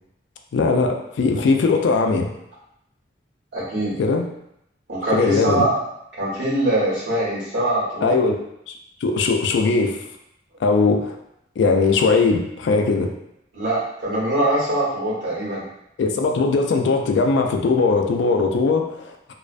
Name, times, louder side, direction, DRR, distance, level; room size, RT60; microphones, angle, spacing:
voice 1, 0.5-2.3 4.0-4.2 5.1-5.7 8.0-8.4 8.7-8.8 9.0-10.0 10.6-11.1 11.6-13.1 16.0-19.3, left 4 dB, 75° left, 4 dB, 0.3 m, -19 dB
voice 2, 3.5-3.9 4.9-5.8 6.2-8.1 13.5-15.7, right 1 dB, 85° right, -8 dB, 1.1 m, -23 dB
2.4 x 2.1 x 2.4 m, 0.80 s
head